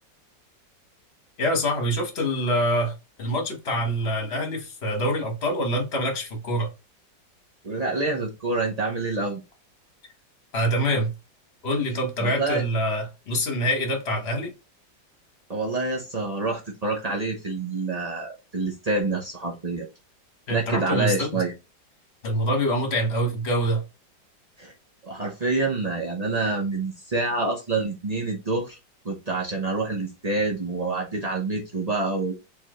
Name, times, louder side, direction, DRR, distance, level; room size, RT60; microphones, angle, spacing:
voice 1, 1.4-6.7 10.5-11.1 11.6-14.5 20.5-21.4 22.2-23.8, equal, 35° left, 1.4 m, -25 dB
voice 2, 7.6-9.4 12.2-12.6 15.5-19.9 20.5-21.5 24.6-24.7 25.0-28.8 29.0-32.3, right 3 dB, 75° right, 0.3 m, -27 dB
4.7 x 3.4 x 3.1 m
omnidirectional pair, 2.0 m